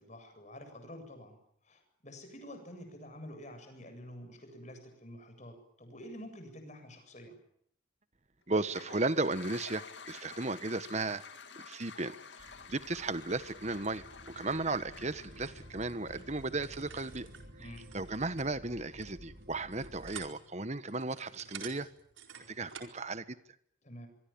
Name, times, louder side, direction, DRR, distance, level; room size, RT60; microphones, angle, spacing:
voice 1, 0.0-1.4 1.6-7.4 17.6-17.9 23.8-24.1, equal, 40° left, 6 dB, 7.7 m, -48 dB
Toilet flush, 8.5-17.4, left 5 dB, 65° left, 2.6 m, -51 dB
voice 2, 8.5-11.2 11.6-17.3 17.6-17.7 17.9-21.9 22.5-23.4, right 3 dB, 35° right, 13 dB, 1.3 m, -35 dB
sound 1, 12.4-20.3, equal, 60° right, 5.5 m, -53 dB
sound 2, 15.1-23.0, right 7 dB, 85° right, 4.6 m, -51 dB
25.0 x 24.0 x 8.8 m, 0.68 s
head